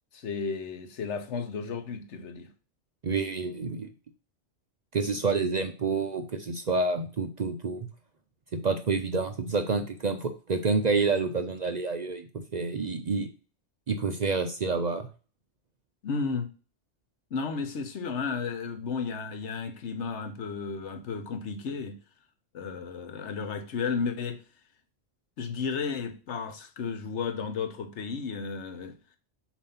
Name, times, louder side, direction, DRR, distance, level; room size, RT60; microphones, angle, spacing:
voice 1, 0.1-2.5 16.0-16.5 17.3-22.0 22.5-24.4 25.4-29.0, left 5 dB, 75° left, 1.2 m, -33 dB
voice 2, 3.0-3.9 4.9-7.9 8.5-13.3 13.9-15.1, right 4 dB, 45° right, 0.6 m, -28 dB
7.1 x 2.8 x 5.6 m
omnidirectional pair, 1.2 m